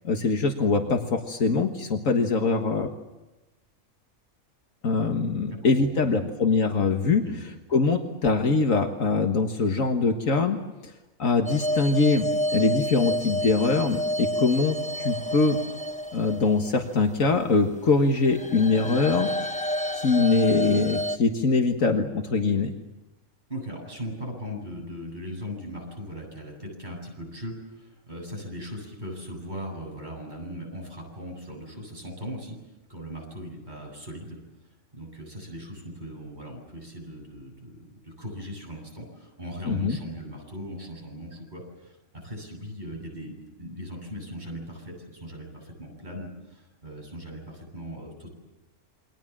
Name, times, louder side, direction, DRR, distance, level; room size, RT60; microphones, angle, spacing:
voice 1, 0.0-2.9 4.8-7.2 7.7-10.6 10.8-10.9 11.2-15.6 16.1-19.3 19.9-22.7 39.7-40.0, left 4 dB, 80° left, 4 dB, 2.0 m, -23 dB
voice 2, 5.5-6.3 7.2-7.5 23.5-32.6 32.9-34.4 34.9-48.3, equal, 35° right, 0 dB, 8.3 m, -39 dB
sound 1, 11.5-17.2 18.1-21.2, equal, 5° left, 0.7 m, -30 dB
28.5 x 23.5 x 7.5 m, 1.0 s
omnidirectional pair, 1.4 m